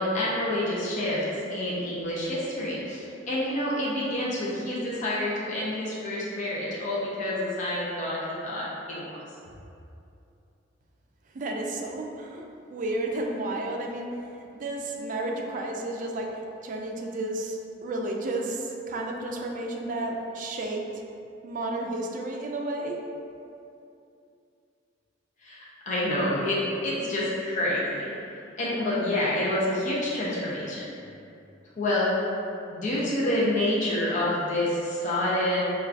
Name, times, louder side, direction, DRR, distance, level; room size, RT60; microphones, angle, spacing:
voice 1, 0.0-9.1 25.4-28.1 28.6-30.9 31.8-32.1 32.7-35.6, left 1 dB, 40° left, -7 dB, 0.5 m, -28 dB
voice 2, 11.3-14.1 14.4-16.3 16.6-20.9 21.4-23.0, right 2 dB, 45° right, 1 dB, 0.3 m, -32 dB
4.4 x 2.3 x 2.4 m, 2.6 s
head